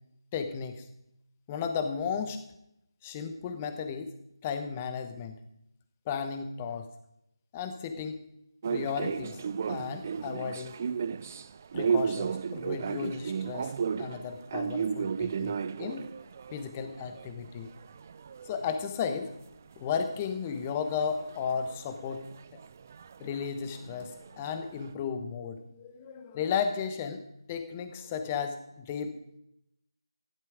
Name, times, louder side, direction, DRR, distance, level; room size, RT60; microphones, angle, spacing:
voice 1, 0.3-0.9 1.5-2.4 3.0-4.1 4.4-5.3 6.1-6.9 7.5-8.2 8.7-9.4 9.7-10.7 11.7-16.1 16.5-17.7 18.4-19.3 19.8-22.2 23.2-27.2 27.5-29.4, left 6 dB, 20° left, 8 dB, 1.0 m, -34 dB
sound 1, 8.6-19.5 19.7-24.9, right 6 dB, 30° right, 0.4 m, -35 dB
14.0 x 11.5 x 5.0 m, 0.80 s
figure-of-eight pair, 160°, 2 cm